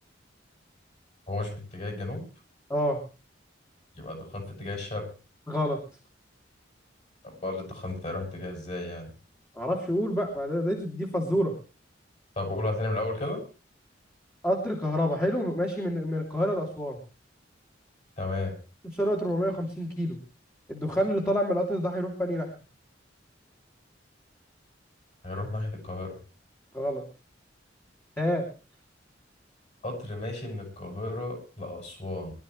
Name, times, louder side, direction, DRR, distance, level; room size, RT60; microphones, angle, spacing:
voice 1, 1.3-2.2 4.0-5.0 7.2-9.1 12.4-13.4 18.2-18.6 25.2-26.2 29.8-32.3, left 2 dB, 40° left, 2 dB, 7.3 m, -33 dB
voice 2, 5.5-5.8 9.6-11.5 14.4-17.0 18.9-20.2 20.7-22.5 26.7-27.0 28.2-28.4, equal, 15° left, -1 dB, 2.7 m, -28 dB
22.5 x 12.5 x 3.2 m, 0.33 s
head